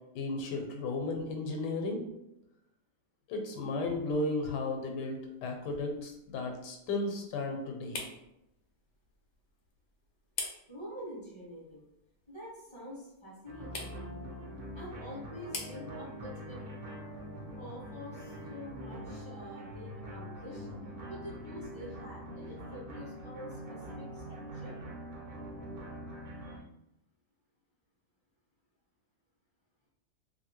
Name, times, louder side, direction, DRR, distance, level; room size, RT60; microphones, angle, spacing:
voice 1, 0.1-2.0 3.3-8.0, left 2 dB, 85° left, 3 dB, 1.2 m, -34 dB
sound 1, 4.4-19.2, left 3 dB, 65° left, 0.7 m, -49 dB
voice 2, 10.7-11.8 12.3-14.0 14.7-16.7 17.6-20.7 21.1-24.8 26.4-26.6, equal, 20° right, -8 dB, 0.8 m, -46 dB
sound 2, 13.5-26.6, equal, 55° right, 0.6 m, -44 dB
2.7 x 2.7 x 2.9 m, 0.85 s
omnidirectional pair, 1.8 m